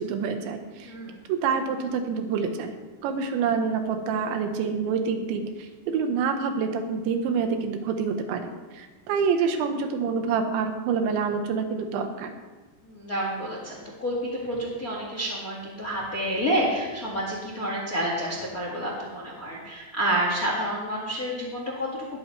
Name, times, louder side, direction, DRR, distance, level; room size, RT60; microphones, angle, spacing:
voice 1, 0.0-0.9 1.3-2.8 3.0-12.3, right 5 dB, 85° right, 6 dB, 3.5 m, -27 dB
voice 2, 0.8-1.2 12.8-22.2, right 1 dB, 40° left, -2 dB, 1.1 m, -29 dB
19.0 x 13.0 x 3.3 m, 1.3 s
omnidirectional pair, 5.1 m